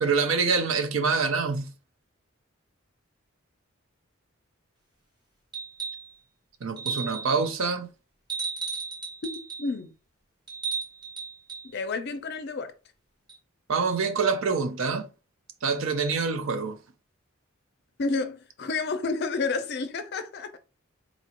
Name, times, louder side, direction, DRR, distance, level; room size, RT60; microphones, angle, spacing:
voice 1, 0.0-1.7 6.6-7.9 13.7-15.1 15.6-16.8, right 4 dB, 65° right, 0.5 m, -26 dB
sound 1, 5.5-6.1 6.8-7.4 8.3-9.7 10.5-11.7 13.3-13.4, right 5 dB, 20° right, 0.7 m, -34 dB
voice 2, 9.6-9.9 11.7-12.7 18.0-20.5, left 3 dB, 50° left, 0.5 m, -30 dB
4.0 x 2.4 x 2.9 m
head